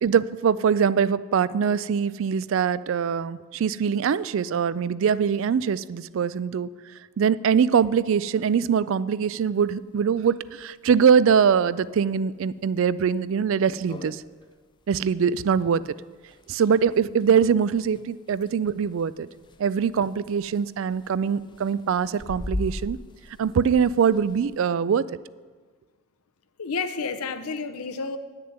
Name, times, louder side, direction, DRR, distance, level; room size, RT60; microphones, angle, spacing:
voice 1, 0.0-6.7 7.2-14.2 14.9-15.8 16.5-19.3 19.6-23.0 23.4-25.1, right 7 dB, 60° right, 18 dB, 0.3 m, -23 dB
sound 1, 9.7-9.8 10.0-10.1 10.5-10.6 11.1-11.4 11.9-12.0 12.5-12.6 12.9-13.0 13.4-13.5 13.7-24.7, left 1 dB, 20° left, 0.4 m, -40 dB
voice 2, 26.6-28.2, left 4 dB, 85° left, 10 dB, 0.8 m, -30 dB
9.5 x 6.8 x 9.0 m, 1.5 s
head